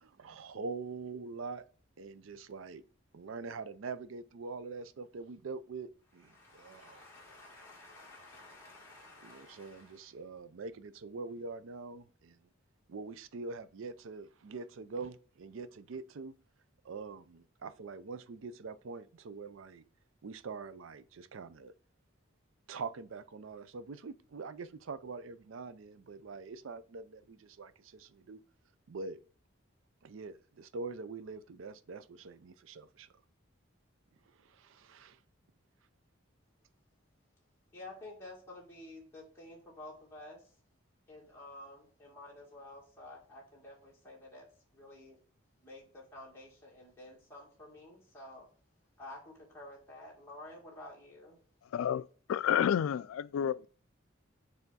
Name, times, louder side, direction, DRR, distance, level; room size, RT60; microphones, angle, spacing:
voice 1, 0.0-1.7 2.0-2.8 3.1-7.0 9.2-12.4 12.9-16.4 16.8-19.8 20.2-21.7 22.7-28.4 28.9-29.2 30.0-33.1 34.3-35.2, right 4 dB, 70° right, 0.4 m, -44 dB
voice 2, 6.3-10.0 37.7-40.4 41.1-44.5 44.7-45.2 45.6-48.5 49.0-51.4, left 2 dB, 10° left, 1.8 m, -51 dB
voice 3, 51.7-53.7, left 9 dB, 85° left, 0.3 m, -30 dB
6.7 x 3.5 x 4.1 m
head